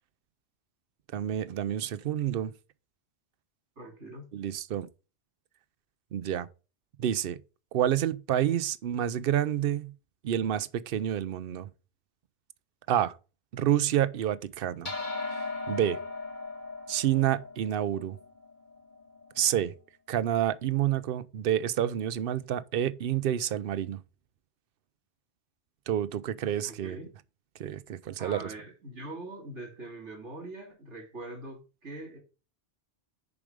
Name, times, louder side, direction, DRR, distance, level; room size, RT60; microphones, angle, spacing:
voice 1, 1.1-2.5 4.3-4.9 6.1-6.5 7.0-7.4 7.7-9.9 10.2-11.7 12.9-13.1 13.5-14.9 15.7-16.0 16.9-18.2 19.4-19.7 20.1-24.0 25.9-27.0 27.6-28.5, right 11 dB, 60° right, 0.7 m, -28 dB
voice 2, 3.8-4.2 26.6-27.1 28.2-32.2, right 2 dB, 85° right, 3.1 m, -42 dB
sound 1, 14.8-19.5, left 3 dB, 40° left, 1.8 m, -38 dB
7.1 x 5.0 x 5.0 m
omnidirectional pair, 1.2 m